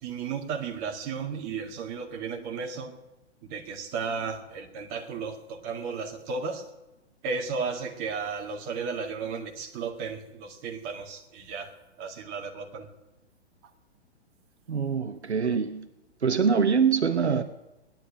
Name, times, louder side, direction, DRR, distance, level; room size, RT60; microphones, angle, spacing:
voice 1, 0.0-3.0 3.4-6.7 7.2-12.9 16.3-16.5, right 5 dB, 25° right, 3 dB, 2.0 m, -34 dB
voice 2, 14.7-15.9 16.2-17.4, right 6 dB, 70° right, 11 dB, 0.9 m, -24 dB
17.5 x 11.0 x 7.3 m, 1.0 s
figure-of-eight pair, 115°, 34 cm